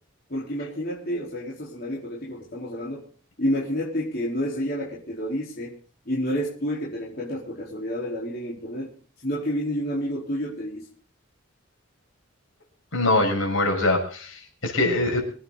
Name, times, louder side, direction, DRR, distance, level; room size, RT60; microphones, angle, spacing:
voice 1, 0.3-3.0 3.4-5.8 6.0-8.9 9.2-10.9, equal, 45° left, -5 dB, 4.4 m, -29 dB
voice 2, 12.9-15.2, left 2 dB, 70° left, 2 dB, 6.5 m, -23 dB
25.5 x 10.0 x 4.1 m, 0.43 s
head